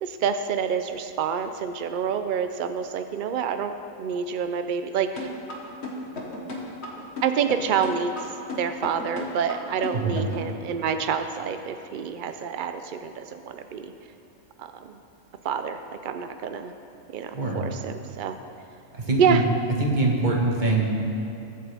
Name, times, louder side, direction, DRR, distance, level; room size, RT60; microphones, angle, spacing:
voice 1, 0.0-5.3 7.2-8.3 8.6-13.9 14.6-15.0 15.4-16.7 17.1-18.4 19.2-19.4, right 7 dB, 75° right, 8 dB, 0.4 m, -27 dB
sound 1, 5.2-10.5, left 2 dB, 50° left, 1.8 m, -35 dB
voice 2, 18.9-19.4 19.8-20.8, right 2 dB, 35° right, -2 dB, 1.7 m, -23 dB
22.0 x 7.8 x 3.5 m, 2.9 s
omnidirectional pair, 1.5 m